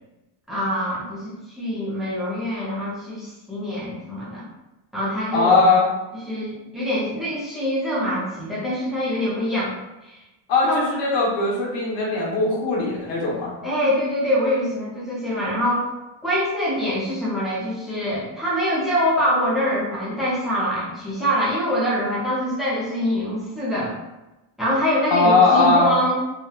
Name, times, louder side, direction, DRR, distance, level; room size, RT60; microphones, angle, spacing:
voice 1, 0.5-4.4 4.9-5.6 6.3-9.7 10.0-10.2 10.7-10.8 13.6-15.9 16.2-23.9 24.6-26.2, equal, ahead, -8 dB, 0.4 m, -24 dB
voice 2, 5.3-5.9 10.5-13.5 25.1-25.9, left 3 dB, 80° left, -4 dB, 1.0 m, -19 dB
2.8 x 2.1 x 2.2 m, 1.0 s
cardioid pair, 175°, 44 cm